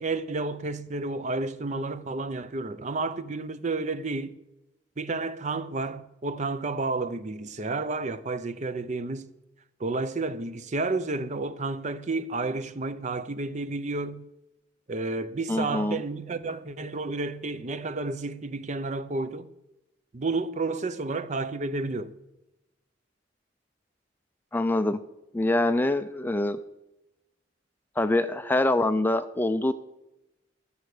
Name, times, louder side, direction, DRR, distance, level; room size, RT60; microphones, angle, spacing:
voice 1, 0.0-4.4 5.0-9.3 9.8-14.3 14.9-19.5 20.1-22.1, right 3 dB, 40° right, 0.6 m, -31 dB
voice 2, 15.5-16.0 24.5-25.0 25.3-26.6 28.0-29.7, left 2 dB, 10° left, 0.4 m, -24 dB
13.5 x 7.2 x 6.6 m
head